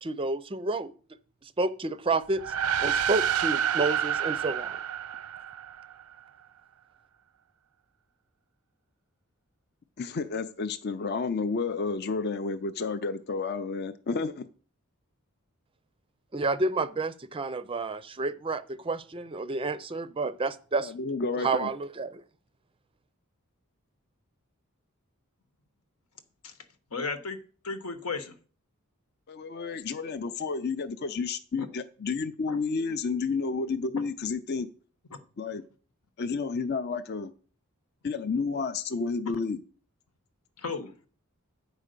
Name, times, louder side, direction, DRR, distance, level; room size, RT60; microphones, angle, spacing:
voice 1, 0.0-0.9 1.4-2.5 2.8-4.8 16.3-20.9 21.4-22.2, right 3 dB, 25° right, 0.4 m, -30 dB
sound 1, 2.3-6.0, right 9 dB, 85° right, 0.5 m, -29 dB
voice 2, 10.0-14.5 20.8-21.7 29.3-34.7 35.4-35.6 36.2-37.3 38.0-39.6, left 4 dB, 45° left, 0.5 m, -31 dB
voice 3, 26.9-27.4 27.6-28.4 31.6-31.7 32.5-32.6 40.6-41.1, left 4 dB, 85° left, 1.2 m, -34 dB
9.0 x 4.9 x 6.6 m
head